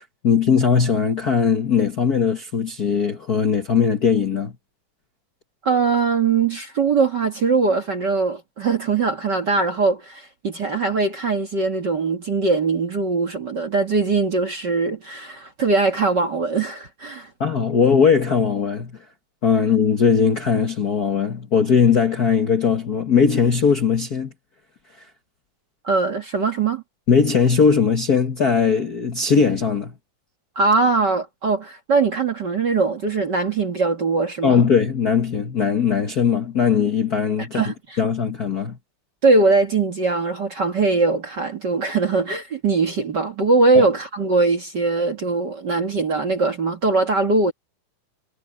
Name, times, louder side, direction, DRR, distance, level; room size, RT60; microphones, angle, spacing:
voice 1, 0.0-4.5 17.4-19.0 19.4-24.3 25.0-25.1 27.1-29.9 34.4-38.8 43.7-43.8, left 6 dB, 85° left, 0.8 m, -19 dB
voice 2, 5.6-17.3 25.8-26.8 30.5-34.7 37.5-38.0 39.2-47.5, right 3 dB, 40° right, 1.6 m, -21 dB
omnidirectional pair, 4.0 m